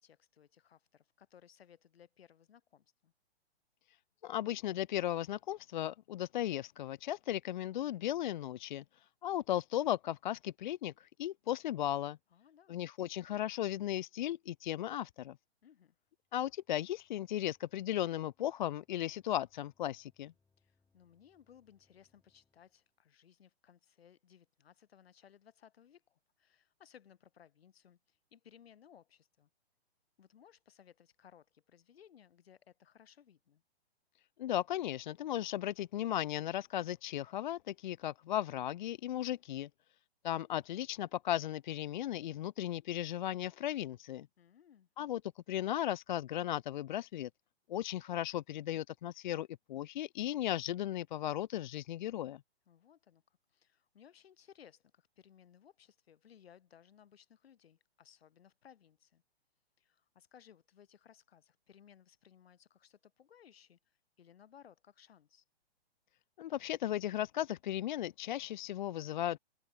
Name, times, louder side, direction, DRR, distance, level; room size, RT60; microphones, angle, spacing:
voice 1, 0.0-3.1 12.3-12.8 15.6-16.0 20.6-29.5 30.2-33.6 44.4-44.9 52.7-59.2 59.8-65.4, left 9 dB, 65° left, 3.8 m, -62 dB
voice 2, 4.2-8.8 9.2-12.2 12.7-15.4 16.3-20.3 34.4-39.7 40.2-44.3 45.0-45.2 45.5-47.3 47.7-52.4 66.4-69.4, left 12 dB, 50° left, 0.4 m, -36 dB
sound 1, 16.2-23.0, left 4 dB, 5° left, 5.9 m, -80 dB
hypercardioid pair, 135°, 32 cm